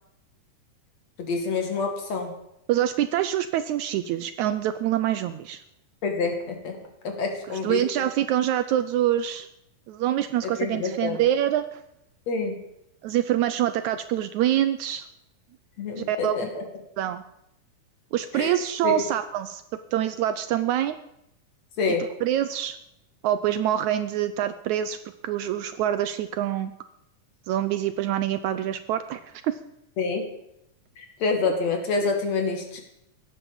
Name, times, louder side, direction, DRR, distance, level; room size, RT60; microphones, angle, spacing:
voice 1, 1.2-2.3 6.0-7.8 10.4-11.2 12.3-12.6 15.8-16.7 18.3-18.5 18.8-19.0 21.8-22.1 30.0-30.3 31.0-32.8, left 4 dB, 55° left, 4 dB, 3.4 m, -27 dB
voice 2, 2.7-5.6 7.5-9.5 9.9-11.8 13.0-15.1 15.9-16.4 17.0-17.2 18.1-19.6 19.9-20.9 21.9-22.0 22.2-22.8 23.2-25.0 25.2-26.7 27.5-29.5, right 11 dB, 75° right, 12 dB, 1.9 m, -25 dB
16.0 x 11.0 x 7.2 m, 0.81 s
omnidirectional pair, 3.7 m